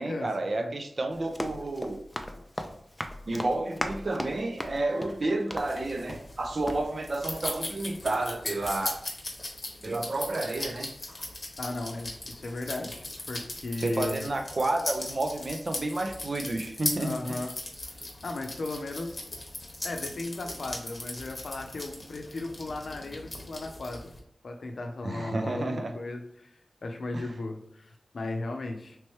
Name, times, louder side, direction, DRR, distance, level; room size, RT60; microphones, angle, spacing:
voice 1, 0.0-2.0 3.3-9.1 9.8-10.9 13.8-17.4 25.0-25.9 27.1-27.3, right 2 dB, 50° right, 5 dB, 0.5 m, -30 dB
Run, 1.1-6.4 6.7-6.8, left 1 dB, 10° left, 0.4 m, -38 dB
sound 1, 5.6-24.2, left 2 dB, 45° left, 0.9 m, -39 dB
voice 2, 11.6-14.3 17.0-17.5 17.8-19.2 19.8-24.1 24.4-26.5 26.8-29.0, left 2 dB, 70° left, 4 dB, 0.5 m, -36 dB
3.2 x 3.1 x 3.0 m, 0.73 s
wide cardioid pair, 90°, 0 cm